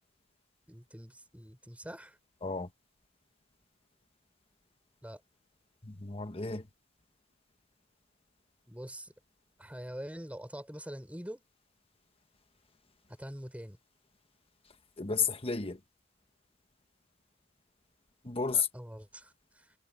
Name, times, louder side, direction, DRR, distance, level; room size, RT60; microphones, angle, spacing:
voice 1, 0.7-2.2 5.0-5.2 8.7-9.1 9.6-11.4 13.2-13.8 18.5-19.7, equal, 5° right, 5.7 m, -44 dB
voice 2, 5.8-6.6 15.0-15.8 18.2-18.7, left 5 dB, 30° left, 1.3 m, -32 dB
head